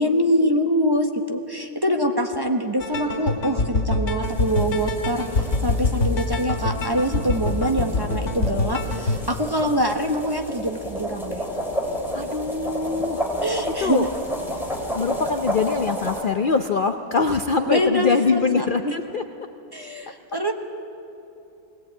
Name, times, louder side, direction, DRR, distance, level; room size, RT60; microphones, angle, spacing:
voice 1, 0.0-5.2 5.6-11.4 13.4-14.1 17.7-18.9 19.7-20.5, equal, 15° right, 3 dB, 0.9 m, -24 dB
sound 1, 2.8-9.2, left 3 dB, 45° left, 2.6 m, -25 dB
sound 2, 4.2-16.2, equal, ahead, 3.0 m, -31 dB
voice 2, 12.1-13.2 13.8-14.1 14.9-19.2 20.3-20.5, left 4 dB, 80° left, 6 dB, 0.4 m, -23 dB
21.0 x 18.0 x 8.9 m, 2.8 s
omnidirectional pair, 1.8 m